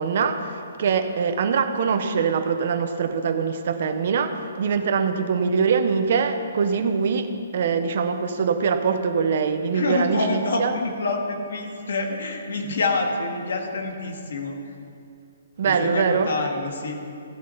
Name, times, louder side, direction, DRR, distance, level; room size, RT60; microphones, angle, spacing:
voice 1, 0.0-10.7 15.6-16.3, right 6 dB, 45° right, 7 dB, 0.9 m, -23 dB
voice 2, 9.7-14.7 15.6-17.0, left 3 dB, 65° left, 3 dB, 1.8 m, -27 dB
14.5 x 8.2 x 5.7 m, 2.4 s
hypercardioid pair, 175°, 0 cm